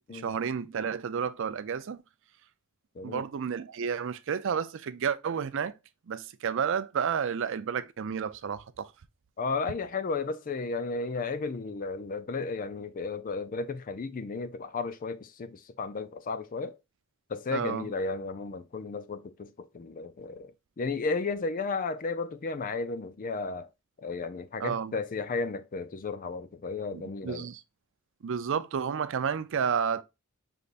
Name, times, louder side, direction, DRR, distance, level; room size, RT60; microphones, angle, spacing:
voice 1, 0.1-2.0 3.0-5.7 6.1-8.9 17.5-17.8 24.6-25.0 26.9-27.6 28.2-30.0, right 7 dB, 60° right, 0.4 m, -31 dB
voice 2, 9.4-16.8 17.3-23.7 24.0-27.5, left 4 dB, 40° left, 0.4 m, -34 dB
5.3 x 3.4 x 2.4 m
head